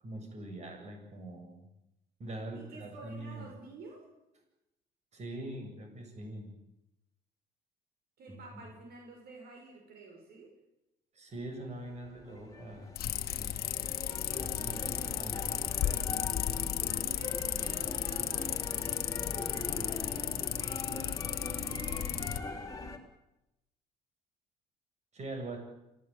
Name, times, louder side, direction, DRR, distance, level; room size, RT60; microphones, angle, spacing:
voice 1, 0.0-1.7 2.2-3.5 5.1-6.5 8.3-8.4 11.1-13.6 14.4-15.6 25.1-25.6, right 1 dB, 40° right, 4 dB, 8.0 m, -43 dB
voice 2, 2.5-4.0 8.2-10.5 16.8-22.6, right 3 dB, 65° right, 2 dB, 6.6 m, -50 dB
sound 1, 11.5-23.0, left 2 dB, 20° left, 3.8 m, -42 dB
sound 2, 13.0-22.4, left 11 dB, 65° left, 1.6 m, -34 dB
26.0 x 18.0 x 9.4 m, 0.90 s
cardioid pair, 110°, 17 cm